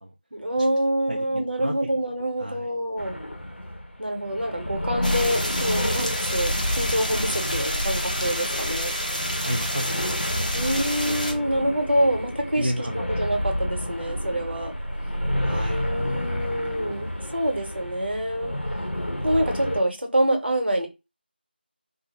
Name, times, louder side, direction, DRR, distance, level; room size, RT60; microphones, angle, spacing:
voice 1, 0.3-3.2 4.0-8.9 10.5-12.9 13.2-14.7 15.7-18.5 19.2-20.9, right 1 dB, 70° right, 0.7 m, -26 dB
voice 2, 1.1-1.7 2.4-2.7 9.4-10.7 11.1-11.3 12.6-13.3 15.4-15.9, equal, 50° right, 0.3 m, -32 dB
sound 1, 3.0-19.8, left 1 dB, 90° left, 0.6 m, -30 dB
sound 2, 5.0-11.3, equal, 45° left, 0.5 m, -30 dB
2.4 x 2.0 x 3.0 m
figure-of-eight pair, 180°, 6 cm